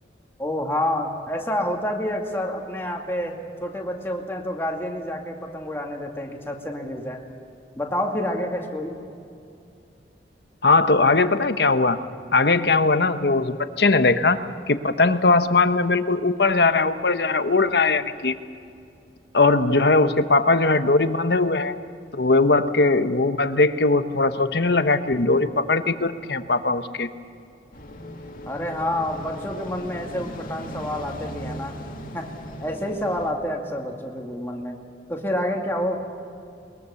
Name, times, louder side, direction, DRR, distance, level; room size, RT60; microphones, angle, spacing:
voice 1, 0.4-7.2 7.8-9.0 28.5-31.8 32.1-32.3 32.6-34.8 35.1-36.0, left 1 dB, 15° left, 0 dB, 2.3 m, -28 dB
voice 2, 10.6-12.0 12.3-14.4 14.7-18.3 19.3-21.7 22.1-27.1, left 3 dB, 65° left, 10 dB, 1.1 m, -20 dB
sound 1, 27.7-33.3, equal, 50° left, 2.3 m, -38 dB
21.5 x 21.5 x 7.1 m, 2.5 s
head